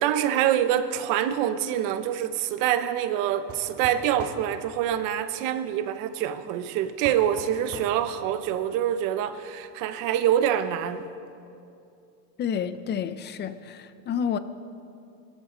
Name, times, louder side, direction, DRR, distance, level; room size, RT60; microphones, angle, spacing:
voice 1, 0.0-11.0, right 10 dB, 55° right, 1.0 m, -25 dB
sound 1, 3.5-4.4 7.0-8.0, right 5 dB, 40° right, 1.9 m, -40 dB
voice 2, 12.4-14.4, left 7 dB, 25° left, 0.7 m, -29 dB
23.0 x 13.5 x 3.9 m
supercardioid pair, 140°, 38 cm